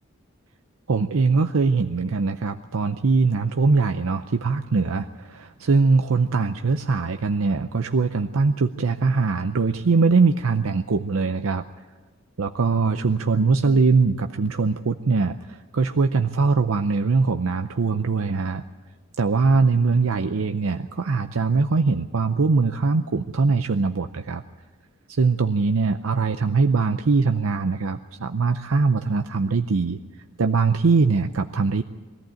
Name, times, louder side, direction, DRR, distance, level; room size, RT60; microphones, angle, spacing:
voice 1, 0.9-11.7 12.4-18.6 19.2-24.4 25.1-30.0 30.4-31.8, right 4 dB, 80° right, 7 dB, 0.6 m, -22 dB
22.5 x 14.5 x 9.1 m, 1.4 s
head